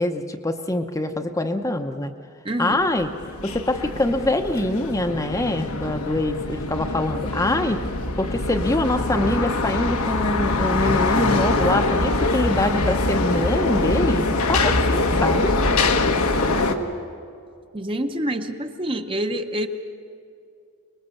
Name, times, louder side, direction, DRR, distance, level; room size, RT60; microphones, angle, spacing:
voice 1, 0.0-2.1 2.6-3.1 3.4-7.8 8.2-15.5, left 1 dB, 15° left, 6 dB, 0.8 m, -24 dB
voice 2, 2.4-2.8 17.7-19.7, right 1 dB, 25° right, 6 dB, 0.9 m, -27 dB
sound 1, 2.9-16.7, left 2 dB, 80° left, 1.3 m, -23 dB
25.0 x 20.0 x 7.0 m, 2.4 s
head